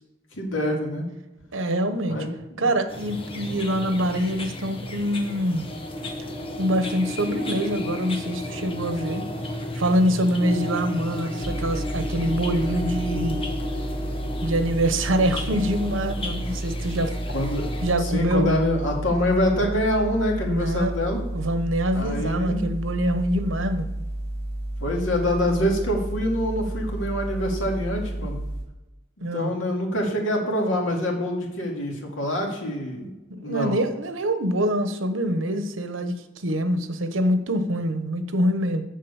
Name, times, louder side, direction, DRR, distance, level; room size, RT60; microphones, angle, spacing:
voice 1, 0.3-1.1 2.1-2.6 17.3-21.2 21.9-22.6 24.8-28.4 29.3-33.1 33.4-33.7, left 1 dB, 85° left, 1 dB, 2.3 m, -25 dB
voice 2, 1.5-2.2 2.6-5.7 6.6-9.2 9.8-13.4 14.4-17.2 17.8-18.5 20.5-20.9 21.3-23.9 29.2-29.5 33.3-38.8, equal, 90° right, 9 dB, 1.1 m, -25 dB
sound 1, 2.9-17.9, left 1 dB, 30° left, 1.0 m, -33 dB
sound 2, 11.4-28.6, right 1 dB, 15° left, 2.9 m, -31 dB
7.6 x 6.4 x 7.1 m, 1.0 s
head